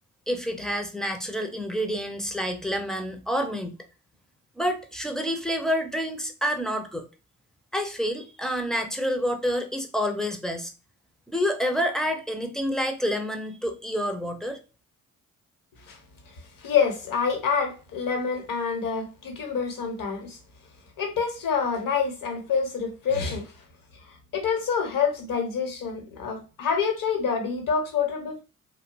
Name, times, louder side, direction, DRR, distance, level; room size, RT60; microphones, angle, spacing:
voice 1, 0.3-3.8 4.6-7.1 7.7-10.7 11.3-14.6, equal, ahead, 0.6 m, -28 dB
voice 2, 16.3-20.4 21.0-23.5 24.0-28.4, left 6 dB, 55° left, 1.1 m, -27 dB
2.8 x 2.2 x 2.5 m
hypercardioid pair, 40°, 41 cm